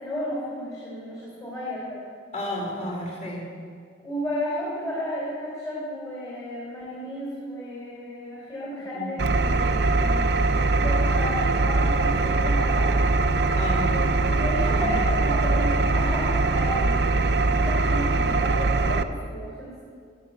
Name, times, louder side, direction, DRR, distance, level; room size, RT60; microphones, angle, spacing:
voice 1, 0.0-2.0 4.0-13.0 13.8-19.7, equal, 20° left, -7 dB, 3.7 m, -33 dB
voice 2, 2.3-3.5 8.8-9.2 13.5-13.9 14.6-14.9, left 1 dB, 35° left, -2 dB, 3.2 m, -32 dB
Engine, 9.2-19.0, right 3 dB, 60° right, 0.7 m, -22 dB
19.5 x 7.3 x 8.7 m, 2.2 s
head